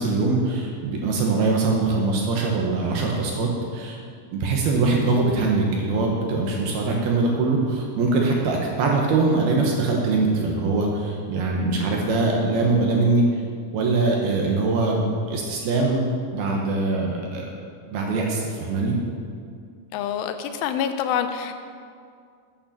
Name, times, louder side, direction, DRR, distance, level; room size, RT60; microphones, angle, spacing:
voice 1, 0.0-4.0 4.3-13.4 13.7-16.0 16.3-17.5 17.9-19.0, right 3 dB, 70° right, -1 dB, 2.7 m, -22 dB
voice 2, 19.9-21.5, left 8 dB, 85° left, 8 dB, 3.2 m, -26 dB
9.5 x 8.8 x 7.2 m, 2.2 s
omnidirectional pair, 5.4 m